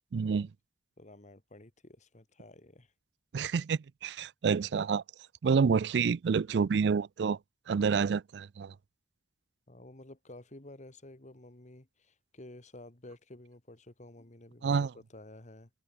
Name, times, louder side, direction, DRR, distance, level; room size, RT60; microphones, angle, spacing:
voice 1, 0.1-0.5 3.3-5.0 5.4-7.4 7.7-8.7 14.6-14.9, right 5 dB, 70° right, 0.4 m, -28 dB
voice 2, 1.0-2.9 9.7-15.7, left 1 dB, 45° left, 2.1 m, -52 dB
head